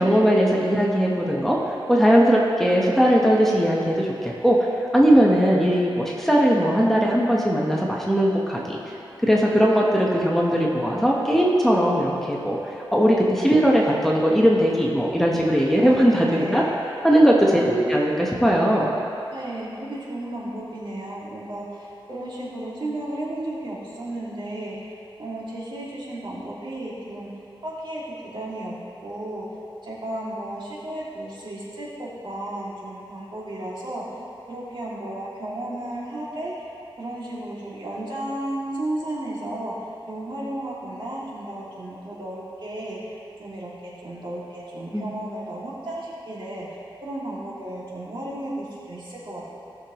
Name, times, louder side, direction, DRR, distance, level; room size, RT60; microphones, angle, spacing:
voice 1, 0.0-1.6 1.9-4.6 4.9-8.8 9.2-12.6 12.9-16.6 17.0-18.9 44.9-45.2, equal, 5° left, -4 dB, 1.2 m, -19 dB
voice 2, 15.4-15.9 16.2-16.7 17.4-17.9 19.3-24.9 25.2-27.3 27.6-28.8 29.0-29.6 29.8-34.2 34.5-36.7 37.0-39.7 40.1-49.4, right 1 dB, 60° right, -7 dB, 2.4 m, -34 dB
16.5 x 6.7 x 3.1 m, 2.8 s
wide cardioid pair, 100°, 9 cm